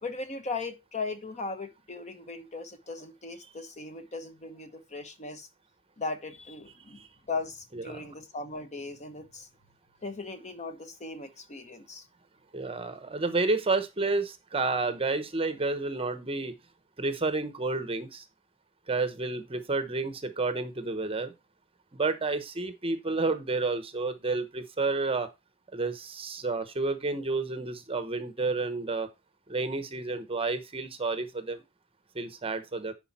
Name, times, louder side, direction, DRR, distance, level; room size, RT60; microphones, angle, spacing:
voice 1, 0.0-5.5 6.0-7.0 7.3-9.5 10.0-12.0, left 3 dB, 35° left, 1.0 m, -38 dB
voice 2, 7.7-8.0 12.5-16.6 17.0-18.2 18.9-21.3 21.9-25.3 25.7-29.1 29.5-31.6 32.1-32.9, right 3 dB, 25° right, 0.8 m, -30 dB
10.0 x 4.8 x 4.1 m
head